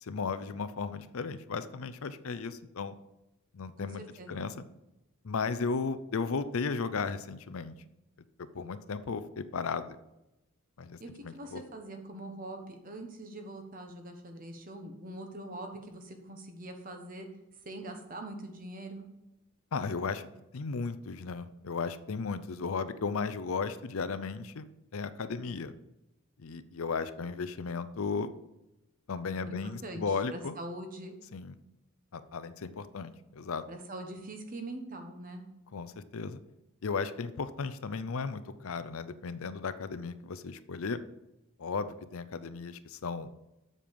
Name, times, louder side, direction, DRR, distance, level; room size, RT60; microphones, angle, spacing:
voice 1, 0.0-3.0 3.5-4.0 4.3-4.5 5.2-7.7 8.4-10.0 10.8-11.0 11.2-11.6 19.7-20.3 20.5-24.6 24.9-25.7 26.4-28.3 29.1-30.6 31.3-31.5 32.1-33.6 35.7-36.4 36.8-41.0 41.6-43.3, left 5 dB, 70° left, 13 dB, 0.5 m, -35 dB
voice 2, 3.8-4.5 11.0-17.3 17.6-19.1 29.5-31.2 33.7-35.5, right 1 dB, 40° right, 5 dB, 1.2 m, -43 dB
7.6 x 6.7 x 5.3 m, 0.93 s
head